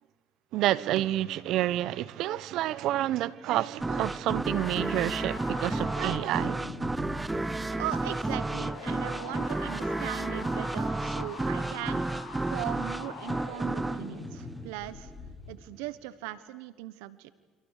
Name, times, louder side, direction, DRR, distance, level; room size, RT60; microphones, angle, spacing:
voice 1, 0.5-6.6, right 14 dB, 70° right, 1.0 m, -29 dB
sound 1, 3.8-15.3, right 2 dB, 15° right, 0.9 m, -32 dB
sound 2, 4.5-15.5, left 5 dB, 65° left, 7.3 m, -44 dB
voice 2, 7.7-12.0 12.5-15.1 15.5-17.3, right 15 dB, 90° right, 1.2 m, -39 dB
29.5 x 26.0 x 6.7 m
supercardioid pair, 85°, 0 cm